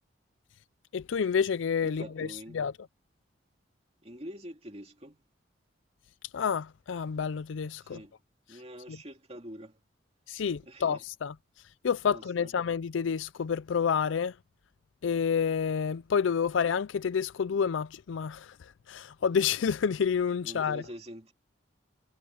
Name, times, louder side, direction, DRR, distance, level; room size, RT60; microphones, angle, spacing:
voice 1, 0.9-2.3 2.5-2.7 6.3-8.0 10.3-11.3 11.8-14.3 15.0-18.5 18.9-20.8, left 6 dB, 90° left, 0.4 m, -29 dB
voice 2, 1.8-2.6 4.0-5.2 7.8-8.2 8.5-9.8 10.6-11.0 12.0-12.5 20.4-21.3, equal, 35° right, 2.6 m, -45 dB
head